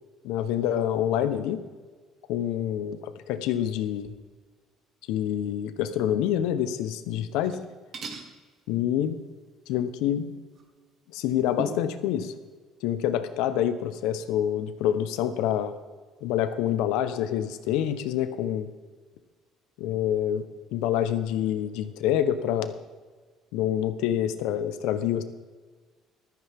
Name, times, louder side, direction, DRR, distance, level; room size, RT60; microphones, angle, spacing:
voice 1, 0.2-1.6 2.3-4.1 5.1-7.6 8.7-9.2 9.7-10.2 11.1-12.3 12.8-15.8 16.2-18.7 19.8-20.4 20.7-22.7 23.5-25.2, left 10 dB, 90° left, 11 dB, 1.0 m, -27 dB
sound 1, 7.3-7.7 7.9-8.3 10.5-10.6 11.6-11.9, right 4 dB, 35° right, 1.5 m, -37 dB
14.0 x 13.5 x 3.7 m, 1.4 s
cardioid pair, 175°, 0 cm